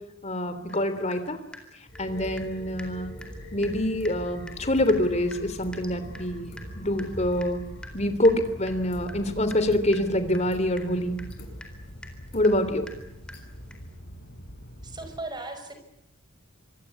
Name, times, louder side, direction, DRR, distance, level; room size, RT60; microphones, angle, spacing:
voice 1, 0.2-1.4 2.0-3.1 3.5-7.6 7.9-11.2 12.3-12.9, left 1 dB, 35° left, 11 dB, 3.2 m, -25 dB
Water tap faucet / Drip, 0.7-0.8 1.1-2.5 2.8-2.9 3.2-3.4 3.6-3.8 4.0-4.2 4.5-13.9, left 1 dB, 5° left, 4.0 m, -47 dB
sound 1, 1.9-15.2, equal, 50° left, 7.3 m, -42 dB
voice 2, 14.8-15.7, right 2 dB, 20° right, 7 dB, 5.8 m, -37 dB
26.0 x 22.0 x 8.5 m, 0.84 s
head